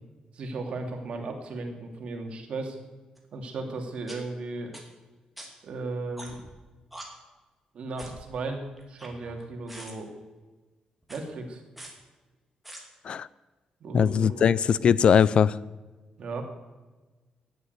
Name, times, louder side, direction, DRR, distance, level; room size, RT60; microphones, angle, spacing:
voice 1, 0.3-2.8 3.3-4.8 5.6-6.4 7.7-10.1 11.1-11.6 13.8-14.5 16.2-16.4, right 3 dB, 55° right, 3 dB, 2.7 m, -35 dB
sound 1, 3.2-3.3 4.1-4.2 4.7-4.8 5.4-5.5 6.2-6.5 6.9-7.0 8.0-8.2 8.8-9.4 9.7-9.9 11.0-11.2 11.8-11.9 12.6-12.8, right 1 dB, 5° right, 2.8 m, -43 dB
voice 2, 13.9-15.6, left 7 dB, 50° left, 19 dB, 0.3 m, -20 dB
13.5 x 10.5 x 8.1 m, 1.3 s
wide cardioid pair, 155°, 2 cm